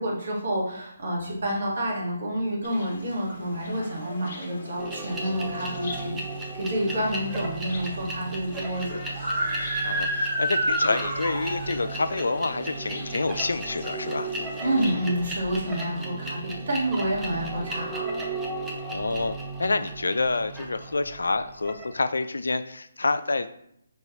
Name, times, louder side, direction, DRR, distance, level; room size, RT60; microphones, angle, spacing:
voice 1, 0.0-6.2 6.5-9.0 14.6-18.1, right 1 dB, 60° right, -3 dB, 1.8 m, -28 dB
sound 1, 2.6-15.0, left 2 dB, 50° left, 1.1 m, -43 dB
sound 2, 4.8-22.0, right 2 dB, 10° right, 0.6 m, -35 dB
Screaming, 9.1-11.9, right 1 dB, 40° right, 1.3 m, -28 dB
voice 2, 9.8-14.3 18.8-23.5, left 3 dB, 80° left, 12 dB, 0.3 m, -28 dB
5.4 x 3.1 x 3.0 m, 0.71 s
hypercardioid pair, 155°, 0 cm